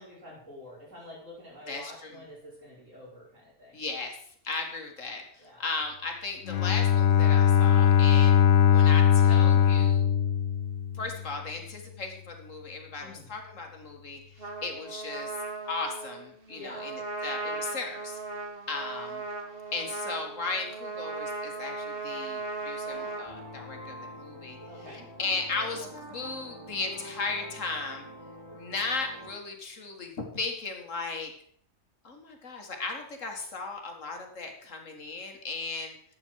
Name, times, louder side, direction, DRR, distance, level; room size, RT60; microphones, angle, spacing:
voice 1, 0.0-3.8 5.4-5.6 13.0-13.3 16.6-16.8 24.7-25.1, left 1 dB, 85° right, -5 dB, 5.7 m, -47 dB
voice 2, 1.7-2.2 3.7-4.2 4.4-8.4 8.6-10.1 10.9-15.3 15.7-18.2 18.7-19.2 19.7-28.1 28.5-31.3 32.0-35.9, left 3 dB, 85° left, 3 dB, 2.2 m, -36 dB
Bowed string instrument, 6.5-11.3, left 8 dB, 65° left, 0.9 m, -21 dB
Trumpet, 14.4-23.3, right 3 dB, 50° right, 1.6 m, -37 dB
sound 1, 22.9-29.3, equal, 20° right, 5.0 m, -45 dB
12.5 x 8.6 x 4.6 m, 0.63 s
omnidirectional pair, 1.3 m